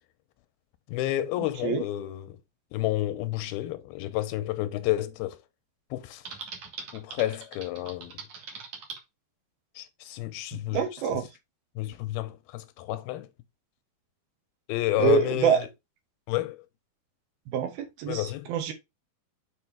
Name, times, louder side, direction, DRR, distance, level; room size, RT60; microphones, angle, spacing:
voice 1, 0.9-2.4 2.7-5.4 5.9-6.2 6.9-8.2 9.8-10.8 11.8-13.3 14.7-15.7 16.3-16.7 18.1-18.5, left 15 dB, 90° left, 2.5 m, -30 dB
Typing, 6.2-9.0, right 5 dB, 55° right, 2.4 m, -41 dB
voice 2, 10.5-11.3 15.0-15.6 17.5-18.7, right 8 dB, 75° right, 3.2 m, -26 dB
7.3 x 4.6 x 3.4 m
omnidirectional pair, 4.4 m